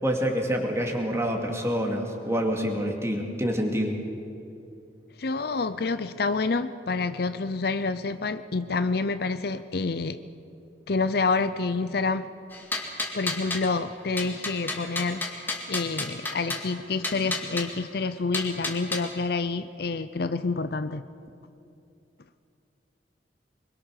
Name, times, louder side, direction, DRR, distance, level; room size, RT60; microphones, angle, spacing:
voice 1, 0.0-4.0, equal, 15° right, 2 dB, 2.5 m, -27 dB
voice 2, 5.2-10.2 10.9-12.3 13.1-21.0, left 3 dB, 55° left, 12 dB, 0.6 m, -28 dB
sound 1, 12.5-13.7 14.2-16.7 17.0-17.7 18.3-19.1, left 2 dB, 10° left, 2.1 m, -31 dB
24.5 x 22.0 x 6.6 m, 2.7 s
head